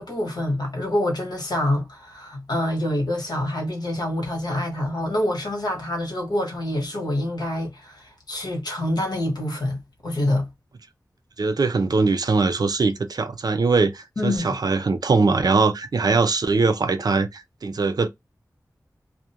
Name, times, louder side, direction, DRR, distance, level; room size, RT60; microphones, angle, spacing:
voice 1, 0.0-10.5 14.2-14.5, left 1 dB, 85° left, 1.1 m, -26 dB
voice 2, 11.4-18.1, right 4 dB, 70° right, 0.4 m, -21 dB
2.4 x 2.1 x 2.7 m
wide cardioid pair, 70°, 7 cm